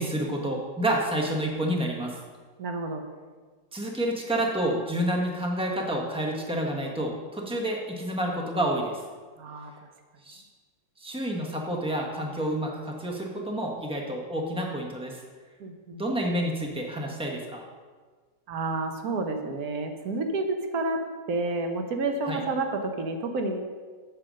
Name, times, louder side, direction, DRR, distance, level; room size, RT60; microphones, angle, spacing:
voice 1, 0.0-2.2 3.7-9.0 10.2-10.4 11.0-15.2 15.9-17.6 22.3-22.4, right 1 dB, 5° right, 0 dB, 0.7 m, -29 dB
voice 2, 2.6-3.0 9.4-9.7 15.6-16.0 18.5-21.0 21.3-23.6, right 3 dB, 60° right, 5 dB, 1.3 m, -30 dB
7.6 x 5.1 x 6.2 m, 1.5 s
omnidirectional pair, 1.9 m